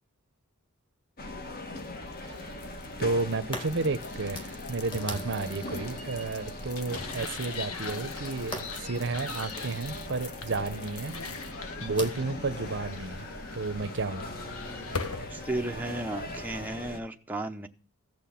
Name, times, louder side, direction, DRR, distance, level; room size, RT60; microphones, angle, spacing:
sound 1, 1.2-17.0, left 2 dB, 45° left, 1.6 m, -40 dB
sound 2, 1.7-15.4, left 5 dB, 70° left, 1.4 m, -42 dB
sound 3, 2.7-16.7, equal, 20° left, 2.1 m, -45 dB
voice 1, 3.0-11.2 11.8-13.3 13.5-14.3, right 3 dB, 55° right, 0.8 m, -32 dB
voice 2, 15.3-17.7, right 2 dB, 10° right, 0.7 m, -34 dB
15.0 x 6.1 x 8.5 m
head